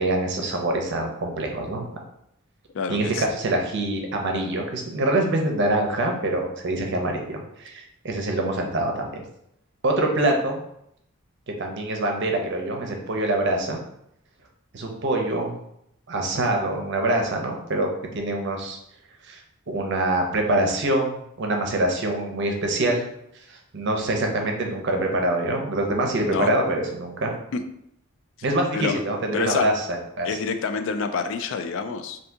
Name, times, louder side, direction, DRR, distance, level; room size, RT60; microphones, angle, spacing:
voice 1, 0.0-1.9 2.9-9.2 9.8-10.6 11.5-13.8 14.7-15.6 16.1-18.8 19.2-19.4 19.7-23.1 23.5-27.3 28.4-30.3, right 1 dB, 55° right, 2 dB, 0.6 m, -25 dB
voice 2, 2.7-3.3 26.3-26.5 27.5-27.6 28.7-29.0 29.3-29.7 30.2-32.2, left 5 dB, 60° left, 8 dB, 0.3 m, -27 dB
2.7 x 2.6 x 3.4 m, 0.76 s
head